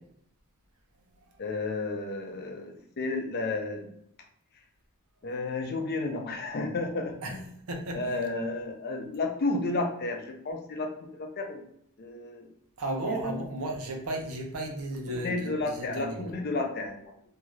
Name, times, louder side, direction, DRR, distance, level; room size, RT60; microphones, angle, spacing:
voice 1, 1.4-3.9 5.2-7.5 7.9-11.6 12.0-12.5 12.9-13.4 15.1-17.3, left 3 dB, 45° left, 3 dB, 0.5 m, -32 dB
voice 2, 7.7-8.0 12.8-16.3, right 1 dB, 75° right, 2 dB, 0.7 m, -34 dB
2.7 x 2.4 x 3.1 m, 0.70 s
head